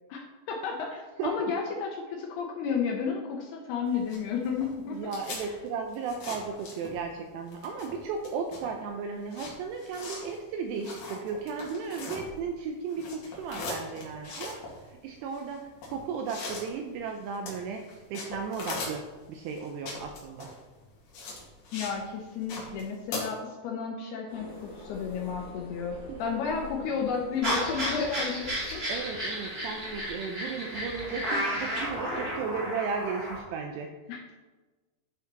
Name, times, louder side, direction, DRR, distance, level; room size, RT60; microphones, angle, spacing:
voice 1, 0.1-5.1 5.4-5.5 21.7-28.8 34.1-34.2, left 6 dB, 75° left, 0 dB, 2.5 m, -32 dB
sound 1, 3.9-7.2 7.5-12.6 12.9-22.0 22.3-23.2, left 3 dB, 55° left, 3.4 m, -40 dB
voice 2, 4.9-14.6 14.9-19.0 19.3-20.5 26.1-26.2 28.9-33.9, right 5 dB, 80° right, 3 dB, 2.5 m, -35 dB
sound 2, 24.3-30.1, left 2 dB, 35° left, 3.5 m, -47 dB
sound 3, 27.4-33.4, equal, 15° right, 2.1 m, -32 dB
12.0 x 5.9 x 4.0 m, 1.2 s
omnidirectional pair, 5.5 m